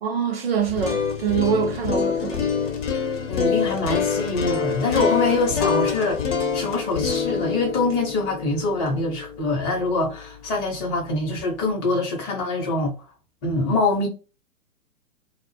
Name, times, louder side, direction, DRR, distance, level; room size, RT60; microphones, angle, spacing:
voice 1, 0.0-2.5, right 7 dB, 45° right, 0.5 m, -24 dB
sound 1, 0.6-10.6, left 6 dB, 55° left, 0.8 m, -26 dB
voice 2, 3.3-6.2 6.5-12.9 13.4-14.1, left 3 dB, 20° left, 0.7 m, -24 dB
2.1 x 2.0 x 3.1 m
figure-of-eight pair, 120°, 43 cm